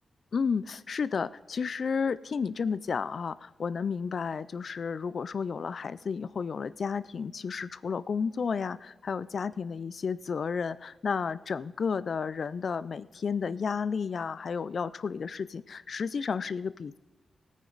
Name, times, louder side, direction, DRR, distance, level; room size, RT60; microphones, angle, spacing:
voice 1, 0.3-17.0, left 5 dB, 50° left, 17 dB, 0.3 m, -32 dB
20.5 x 9.4 x 3.9 m, 1.1 s
wide cardioid pair, 155°, 0 cm